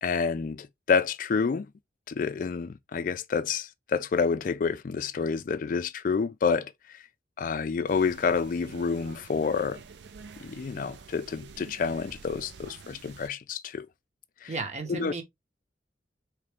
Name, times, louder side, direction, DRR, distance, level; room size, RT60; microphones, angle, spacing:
voice 1, 0.0-1.7 2.1-7.0 7.4-9.8 10.4-13.9 14.4-14.5 14.9-15.1, left 5 dB, 50° left, 0.4 m, -28 dB
sound 1, 7.9-13.3, right 5 dB, 80° right, 0.5 m, -48 dB
voice 2, 14.5-15.2, right 3 dB, 40° right, 1.0 m, -34 dB
3.9 x 3.2 x 3.3 m
head